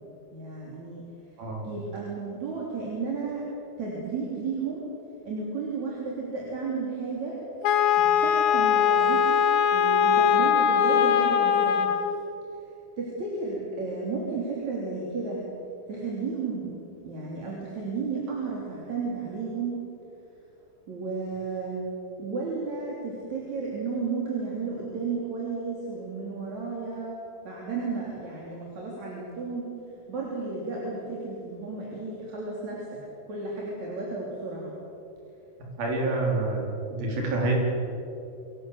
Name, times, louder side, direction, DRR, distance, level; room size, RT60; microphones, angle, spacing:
voice 1, 0.3-1.0 1.6-3.4 3.8-4.8 5.2-7.4 8.0-9.4 9.7-11.9 13.0-15.4 15.9-16.7 17.0-19.8 20.9-21.8 22.2-29.7 30.1-33.0 33.3-34.7, right 4 dB, 50° right, -4 dB, 4.6 m, -33 dB
Wind instrument woodwind instrument, 7.6-12.2, left 8 dB, 80° left, 2.9 m, -21 dB
voice 2, 35.8-36.6 36.9-37.5, right 2 dB, 75° right, -1 dB, 6.1 m, -27 dB
26.5 x 17.5 x 8.1 m, 2.8 s
omnidirectional pair, 4.2 m